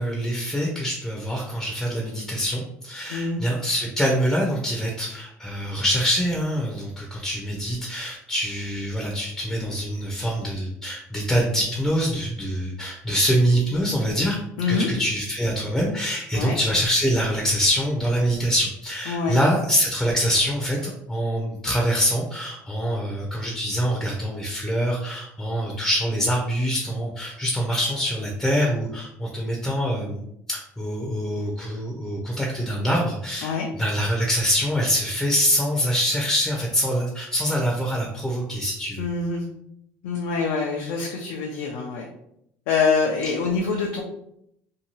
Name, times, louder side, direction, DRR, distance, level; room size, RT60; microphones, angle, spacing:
voice 1, 0.0-14.4 14.7-39.0, equal, 5° left, -2 dB, 0.6 m, -25 dB
voice 2, 3.1-3.4 14.6-14.9 16.3-16.6 19.1-19.4 33.4-33.7 39.0-39.4 40.0-42.1 42.7-44.0, left 4 dB, 85° left, -1 dB, 0.5 m, -25 dB
2.7 x 2.2 x 3.0 m, 0.76 s
cardioid pair, 125°, 5 cm